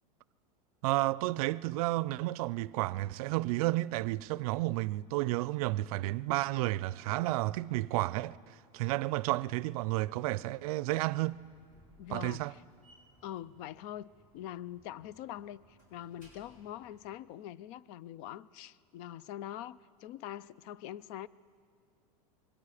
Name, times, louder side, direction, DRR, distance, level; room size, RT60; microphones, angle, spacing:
voice 1, 0.8-8.4 8.7-11.4 12.1-12.5, right 18 dB, 70° right, 0.5 m, -31 dB
Slam, 11.0-17.2, equal, 40° left, 6.8 m, -64 dB
voice 2, 12.0-12.6 13.2-21.3, left 12 dB, 55° left, 0.5 m, -44 dB
25.5 x 21.5 x 5.0 m
supercardioid pair, 125°, 19 cm